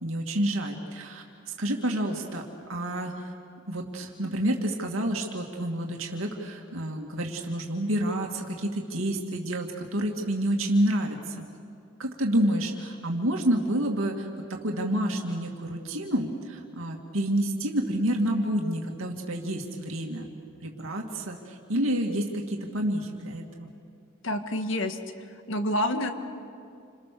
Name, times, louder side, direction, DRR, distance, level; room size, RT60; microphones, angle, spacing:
voice 1, 0.0-2.4 2.7-3.3 3.7-11.4 12.0-14.3 14.6-20.3 20.6-23.7, right 1 dB, 75° right, 1 dB, 2.4 m, -29 dB
voice 2, 24.2-25.0 25.5-26.1, left 1 dB, 65° left, 7 dB, 1.9 m, -27 dB
29.0 x 27.0 x 6.9 m, 2.5 s
head